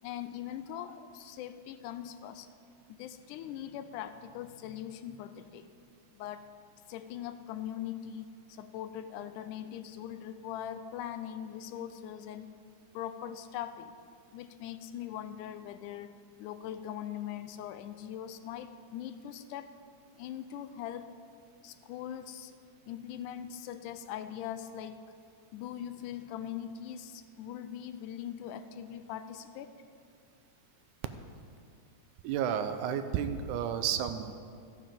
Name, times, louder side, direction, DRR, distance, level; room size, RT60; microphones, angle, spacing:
voice 1, 0.0-2.5 2.9-5.7 6.2-6.4 6.9-12.5 12.9-13.9 14.3-19.8 20.1-21.1 21.6-22.5 22.9-25.0 25.5-29.8, left 10 dB, 85° left, 11 dB, 2.1 m, -41 dB
voice 2, 32.2-34.3, right 9 dB, 85° right, 9 dB, 2.1 m, -31 dB
14.0 x 7.4 x 5.2 m, 2.3 s
omnidirectional pair, 3.5 m